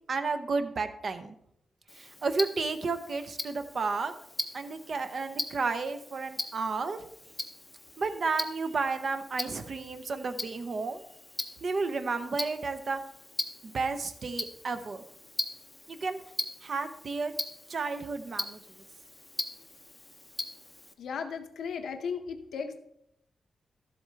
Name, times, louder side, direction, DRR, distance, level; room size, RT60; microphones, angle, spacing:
voice 1, 0.1-1.4 2.0-4.1 4.5-7.0 8.0-11.0 11.6-13.0 13.6-15.0 15.9-16.2 16.6-17.3 17.7-18.6, right 4 dB, 40° right, 9 dB, 0.6 m, -32 dB
Tick-tock, 1.9-20.9, left 1 dB, 10° left, 0.6 m, -40 dB
voice 2, 21.0-22.8, left 6 dB, 75° left, 7 dB, 0.7 m, -36 dB
12.5 x 7.8 x 3.3 m, 0.73 s
wide cardioid pair, 175°, 0 cm